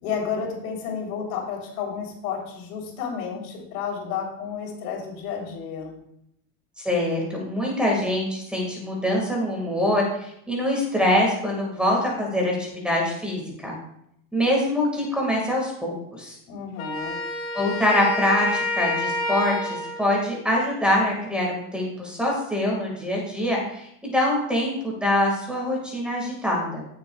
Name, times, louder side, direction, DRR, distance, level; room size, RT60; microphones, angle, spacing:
voice 1, 0.0-6.0 16.5-17.2, left 6 dB, 90° left, 0 dB, 3.5 m, -31 dB
voice 2, 6.8-13.7 14.3-16.4 17.5-26.9, left 1 dB, ahead, -2 dB, 1.8 m, -24 dB
Wind instrument woodwind instrument, 16.8-20.1, left 2 dB, 55° left, 3.0 m, -28 dB
16.5 x 6.8 x 2.3 m, 0.74 s
supercardioid pair, 175°, 44 cm